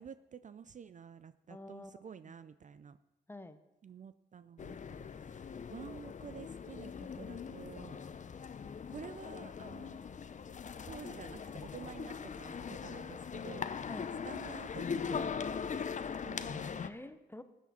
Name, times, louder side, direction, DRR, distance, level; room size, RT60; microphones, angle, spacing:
voice 1, 0.0-3.0 3.8-8.0 8.9-10.0 10.8-13.7 14.2-15.4 16.2-16.7, right 7 dB, 40° right, 13 dB, 0.4 m, -50 dB
voice 2, 1.5-2.4 3.3-3.6 13.9-14.1 16.8-17.4, left 1 dB, 10° left, 11 dB, 0.9 m, -49 dB
sound 1, 4.6-16.9, left 6 dB, 40° left, 0.6 m, -41 dB
14.5 x 8.5 x 4.3 m, 0.97 s
supercardioid pair, 60°, 20 cm